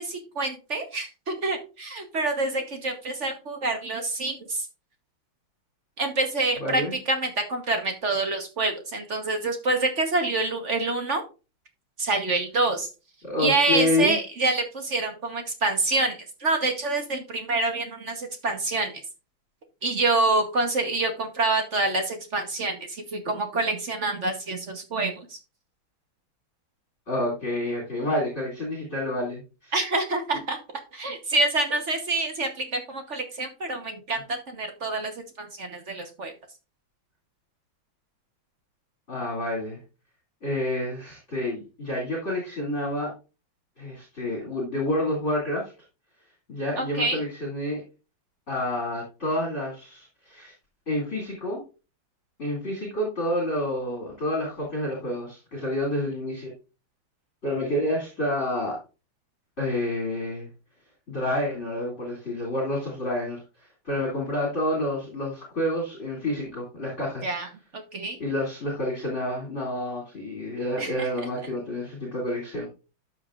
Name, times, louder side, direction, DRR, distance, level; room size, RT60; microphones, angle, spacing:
voice 1, 0.0-4.7 6.0-11.2 12.0-12.9 13.4-18.9 19.8-25.4 29.7-30.6 30.9-36.3 46.8-47.2 67.2-67.5 67.7-68.2 70.8-71.3, right 2 dB, 45° right, 5 dB, 1.2 m, -27 dB
voice 2, 6.6-6.9 13.2-14.2 27.1-29.7 39.1-39.8 40.4-43.1 43.8-45.7 46.5-47.8 48.5-50.5 50.9-51.6 52.4-56.5 57.4-58.8 59.6-60.5 61.1-63.4 63.8-67.3 68.2-72.7, left 1 dB, 35° left, -3 dB, 2.7 m, -28 dB
12.0 x 6.5 x 2.4 m, 0.31 s
omnidirectional pair, 2.3 m